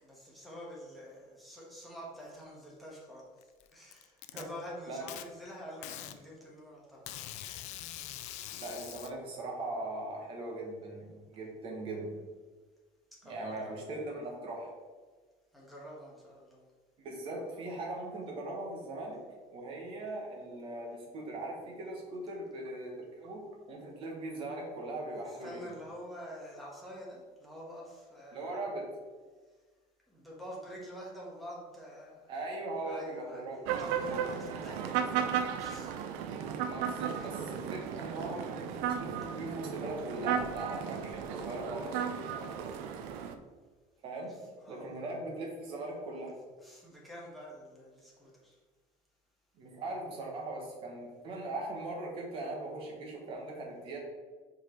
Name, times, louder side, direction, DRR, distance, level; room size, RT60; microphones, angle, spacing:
voice 1, 0.0-3.3 3.7-7.0 13.2-14.0 15.5-16.6 25.2-28.7 30.1-32.4 32.8-33.4 33.7-35.9 37.1-37.3 42.2-42.7 44.6-45.0 46.6-48.5, equal, ahead, -5 dB, 1.3 m, -47 dB
Packing tape duct tape, 3.4-4.4 5.1-5.2 5.8-6.2 7.1-9.1, left 13 dB, 55° left, 0.4 m, -43 dB
voice 2, 8.5-12.1 13.2-14.7 17.0-19.2 19.5-25.6 28.3-28.8 32.3-33.7 36.6-42.0 44.0-44.4 44.7-46.4 49.6-54.0, right 2 dB, 40° right, -1 dB, 1.5 m, -40 dB
sound 1, 33.7-43.4, right 8 dB, 80° right, 0.6 m, -35 dB
5.1 x 4.7 x 4.6 m, 1.4 s
cardioid pair, 180°, 14 cm